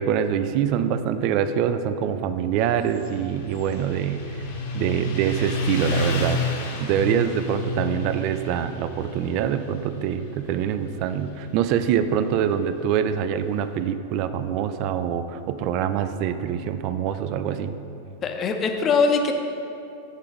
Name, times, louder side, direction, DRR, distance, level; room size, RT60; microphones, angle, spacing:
voice 1, 0.0-4.2 4.7-6.4 6.8-17.7, right 9 dB, 40° right, 11 dB, 0.3 m, -25 dB
Motorcycle, 2.6-13.7, equal, 55° left, 0.9 m, -31 dB
voice 2, 18.2-19.3, left 4 dB, 25° left, 4 dB, 0.6 m, -21 dB
8.3 x 3.8 x 5.0 m, 2.8 s
figure-of-eight pair, 90°, 0 cm